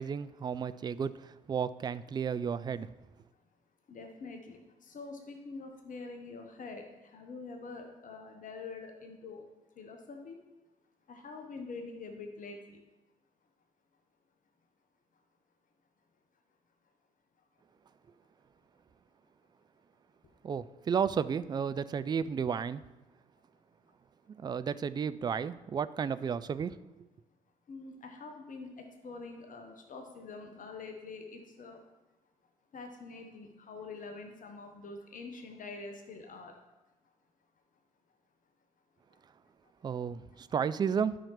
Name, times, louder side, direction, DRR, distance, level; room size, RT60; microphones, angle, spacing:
voice 1, 0.0-2.9 20.4-22.8 24.3-26.8 39.8-41.2, right 7 dB, 20° right, 15 dB, 0.3 m, -33 dB
voice 2, 3.9-9.4 9.7-10.4 11.1-12.8 15.1-15.2 17.4-17.6 23.9-24.0 27.7-31.8 32.7-36.6 37.0-37.1 39.1-39.2 39.6-40.1 40.3-40.4, left 3 dB, 45° left, 4 dB, 1.0 m, -46 dB
11.5 x 5.8 x 3.2 m, 1.0 s
figure-of-eight pair, 40°, 19 cm